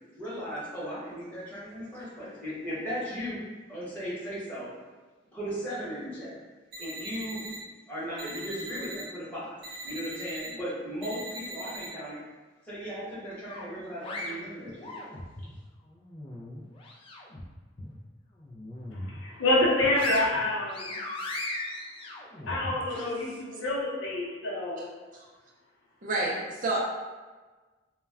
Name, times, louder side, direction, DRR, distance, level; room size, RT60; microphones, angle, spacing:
voice 1, 0.1-3.4 3.7-4.7 5.3-6.4 6.8-12.2 12.6-14.9, equal, 10° left, -11 dB, 1.0 m, -37 dB
sound 1, 6.7-7.6 8.2-9.0 9.6-10.5 11.0-11.9, right 1 dB, 75° right, 0.7 m, -40 dB
sound 2, 13.5-15.5 15.9-17.4 17.8-17.9 18.4-19.2 19.6-23.0, left 2 dB, 30° left, 0.3 m, -38 dB
voice 2, 19.1-21.0 22.4-24.9, left 2 dB, 85° left, -4 dB, 0.7 m, -27 dB
voice 3, 26.0-26.8, right 2 dB, 45° right, -3 dB, 0.5 m, -29 dB
2.2 x 2.1 x 3.4 m, 1.3 s
head